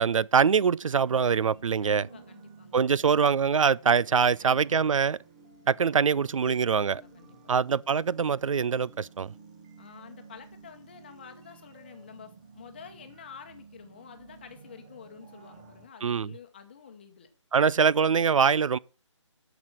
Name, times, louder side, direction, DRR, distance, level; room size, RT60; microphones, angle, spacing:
voice 1, 0.0-2.1 2.7-5.2 5.7-7.0 7.5-9.3 16.0-16.3 17.5-18.8, right 6 dB, 85° right, 0.4 m, -23 dB
sound 1, 1.0-15.9, right 4 dB, 15° right, 0.7 m, -53 dB
voice 2, 1.8-2.8 4.4-4.8 6.7-7.6 9.8-17.3, left 7 dB, 20° left, 1.0 m, -49 dB
11.5 x 6.0 x 6.2 m
hypercardioid pair, 175°, 16 cm